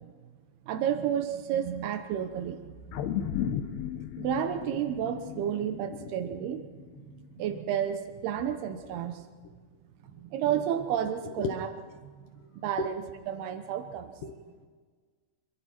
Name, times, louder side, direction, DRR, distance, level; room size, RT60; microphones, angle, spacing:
voice 1, 0.7-2.8 3.4-3.5 4.2-6.7 7.4-9.2 10.2-11.7 12.5-13.0 13.3-14.1, right 9 dB, 85° right, 7 dB, 3.0 m, -31 dB
sound 1, 2.9-7.4 7.8-7.9, left 9 dB, 90° left, 3.0 m, -35 dB
voice 2, 11.2-11.6 12.4-12.5 12.8-12.9 14.2-14.7, left 4 dB, 65° left, 4 dB, 2.5 m, -36 dB
27.0 x 21.5 x 4.5 m, 1.6 s
omnidirectional pair, 4.4 m